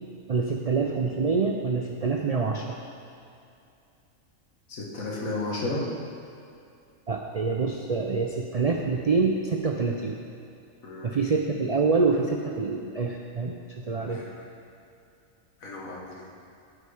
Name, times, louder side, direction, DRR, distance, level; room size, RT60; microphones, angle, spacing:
voice 1, 0.3-2.8 7.1-10.2 11.0-14.2, right 4 dB, 70° right, 1 dB, 0.3 m, -26 dB
voice 2, 4.7-5.8 10.8-11.2 14.0-14.5 15.6-16.2, left 2 dB, 80° left, -3 dB, 1.9 m, -33 dB
13.0 x 5.0 x 4.9 m, 2.6 s
omnidirectional pair, 1.4 m